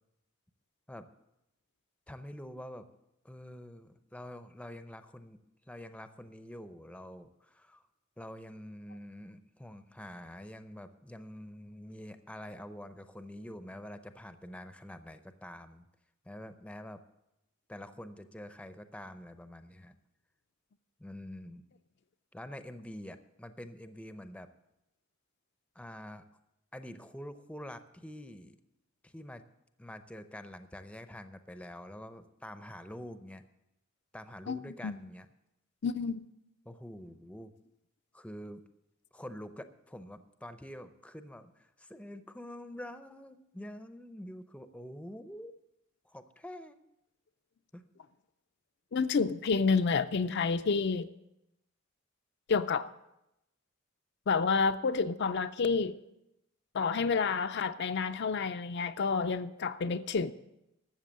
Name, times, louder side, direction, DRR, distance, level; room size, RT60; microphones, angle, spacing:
voice 1, 2.1-2.9 3.2-5.4 5.7-7.8 8.2-15.9 16.2-17.0 17.7-20.0 21.0-21.6 22.3-24.5 25.8-26.2 26.7-28.6 29.0-29.4 29.8-33.4 34.1-35.3 36.6-37.5 38.1-38.6 39.1-45.5 46.0-46.8 47.7-47.8, left 1 dB, 5° left, 0.6 m, -46 dB
voice 2, 34.5-35.0 35.8-36.2 48.9-51.1 52.5-52.9 54.3-56.0 56.7-60.3, left 5 dB, 55° left, 0.5 m, -29 dB
13.0 x 7.5 x 7.4 m
head